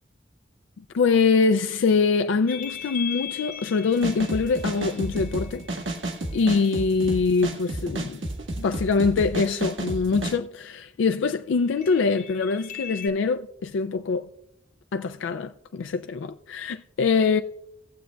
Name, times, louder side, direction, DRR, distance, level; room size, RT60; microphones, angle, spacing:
voice 1, 0.9-5.7 6.3-8.2 8.6-14.3 14.9-17.4, left 4 dB, 70° left, 0.4 m, -24 dB
sound 1, 2.5-7.0 11.7-13.1, left 9 dB, 40° left, 1.2 m, -39 dB
sound 2, 3.9-10.4, right 1 dB, 80° right, 1.5 m, -31 dB
19.0 x 7.3 x 2.2 m
head